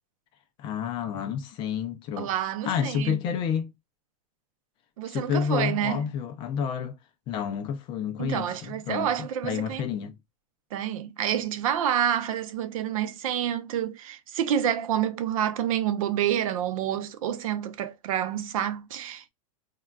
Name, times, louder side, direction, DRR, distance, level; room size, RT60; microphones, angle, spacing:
voice 1, 0.6-2.3 2.7-3.7 5.0-7.0 7.3-10.1, left 7 dB, 25° left, 0.4 m, -30 dB
voice 2, 2.2-3.2 5.0-6.0 8.2-9.9 10.7-19.3, right 10 dB, 70° right, 0.6 m, -28 dB
3.5 x 2.3 x 2.2 m
supercardioid pair, 155°, 18 cm